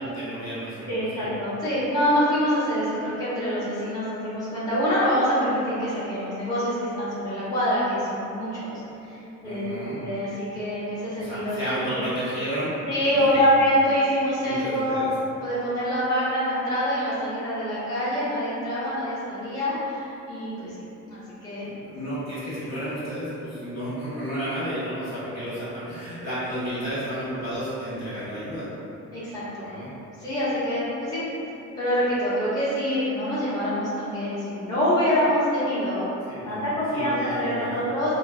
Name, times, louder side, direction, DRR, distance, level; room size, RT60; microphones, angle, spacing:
voice 1, 0.1-1.3 9.4-10.0 11.2-12.7 13.1-13.5 14.4-15.1 21.6-28.7 29.6-29.9 36.3-37.8, equal, 60° left, -11 dB, 1.5 m, -32 dB
voice 2, 0.9-8.8 9.1-11.6 11.8-12.0 12.9-15.0 15.4-21.7 29.1-29.7 30.2-31.2 31.8-36.1 36.4-38.1, equal, 10° left, -13 dB, 1.0 m, -25 dB
3.7 x 2.1 x 2.4 m, 2.9 s
cardioid pair, 90°, 30 cm